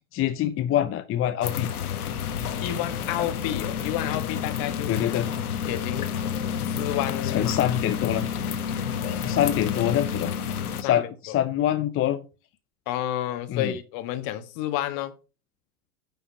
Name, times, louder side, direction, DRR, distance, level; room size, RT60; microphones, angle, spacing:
voice 1, 0.1-1.7 4.9-5.3 7.2-8.3 9.2-10.3 10.8-12.2 13.5-13.7, left 11 dB, 30° left, 0.8 m, -25 dB
sound 1, 1.4-10.8, left 7 dB, 80° left, 1.5 m, -29 dB
voice 2, 2.6-5.2 5.6-6.1 6.6-7.6 10.8-11.3 12.8-15.1, left 12 dB, 50° left, 1.6 m, -30 dB
9.5 x 5.6 x 5.6 m
hypercardioid pair, 100°, 44 cm